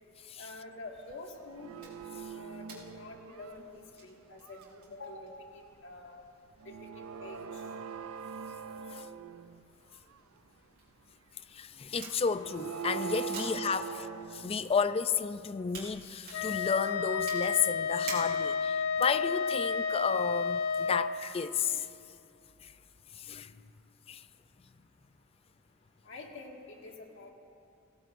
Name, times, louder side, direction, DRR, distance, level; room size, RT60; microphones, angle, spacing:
voice 1, 0.4-1.9 2.4-6.2 6.7-7.7 13.6-14.0 26.0-27.3, left 2 dB, 65° left, 1.9 m, -47 dB
sound 1, 1.1-1.2 1.4-3.9 4.4-4.8 6.6-9.7 10.1-10.2 12.2-14.9, right 7 dB, 90° right, 0.5 m, -42 dB
sound 2, 1.8-18.8, right 4 dB, 50° right, 4.0 m, -51 dB
voice 2, 11.5-13.8 14.4-21.9 22.6-22.7 23.1-23.6 24.1-24.3, left 6 dB, 30° left, 0.4 m, -32 dB
Wind instrument woodwind instrument, 16.3-21.1, left 6 dB, 85° left, 1.0 m, -31 dB
23.0 x 17.0 x 2.6 m
head